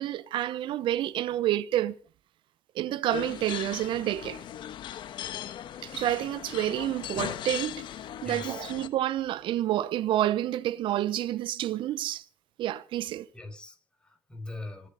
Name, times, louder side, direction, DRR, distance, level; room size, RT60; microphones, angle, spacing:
voice 1, 0.0-1.9 2.7-4.4 5.8-7.8 8.2-12.2 12.6-13.3, right 13 dB, 75° right, 0.9 m, -29 dB
sound 1, 3.1-8.9, left 11 dB, 70° left, 1.3 m, -38 dB
voice 2, 8.2-8.7 13.3-14.9, left 2 dB, 10° left, 5.8 m, -42 dB
26.0 x 9.0 x 5.4 m
cardioid pair, 80°, 8 cm